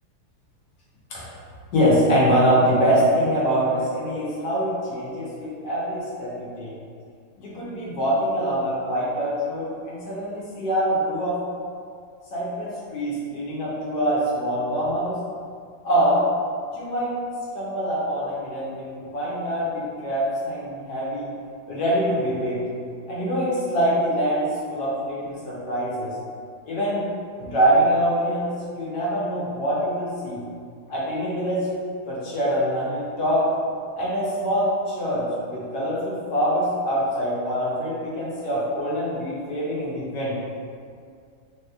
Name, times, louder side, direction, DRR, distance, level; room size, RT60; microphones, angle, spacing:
voice 1, 1.7-6.7 7.4-11.4 12.3-15.2 15.8-16.2 16.7-17.1 17.5-21.3 21.7-22.6 23.1-26.1 26.7-27.1 27.4-30.4 30.9-31.7 32.1-33.4 34.0-40.4, equal, 70° left, -7 dB, 1.1 m, -24 dB
3.4 x 2.8 x 2.3 m, 2.2 s
omnidirectional pair, 2.2 m